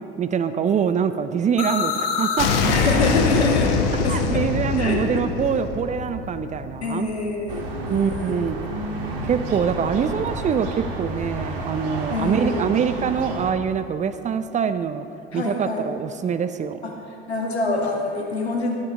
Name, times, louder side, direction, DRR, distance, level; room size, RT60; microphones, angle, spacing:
voice 1, 0.2-2.5 3.3-3.4 4.1-7.1 7.9-8.6 9.2-15.0 15.3-16.8, right 7 dB, 25° right, 11 dB, 0.5 m, -24 dB
sound 1, 1.6-7.3, left 5 dB, 60° left, 1.3 m, -24 dB
voice 2, 2.7-3.7 4.0-4.4 4.8-5.3 6.8-8.4 8.7-9.2 12.1-12.7 15.3-15.9 16.8-17.0 17.3-18.7, left 3 dB, 85° left, 0 dB, 1.8 m, -26 dB
sound 2, 7.5-13.5, right 2 dB, 65° right, 1.9 m, -31 dB
12.5 x 12.0 x 3.7 m, 2.7 s
figure-of-eight pair, 75°, 32 cm